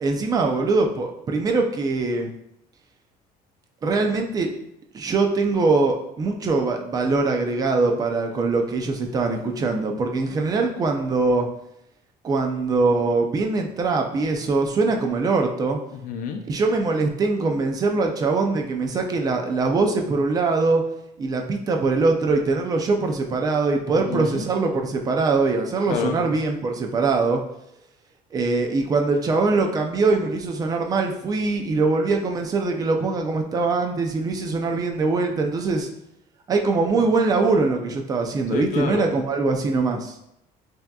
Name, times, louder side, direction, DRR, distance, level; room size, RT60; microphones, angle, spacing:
voice 1, 0.0-2.3 3.8-4.5 4.9-11.5 12.2-15.8 16.5-20.8 21.2-27.4 28.3-35.9 36.5-40.1, right 3 dB, 20° right, 3 dB, 0.4 m, -22 dB
voice 2, 15.9-16.4 23.9-24.5 25.9-26.2 38.5-39.1, left 7 dB, 55° left, 6 dB, 0.5 m, -29 dB
5.7 x 2.8 x 2.3 m, 0.79 s
cardioid pair, 175°, 17 cm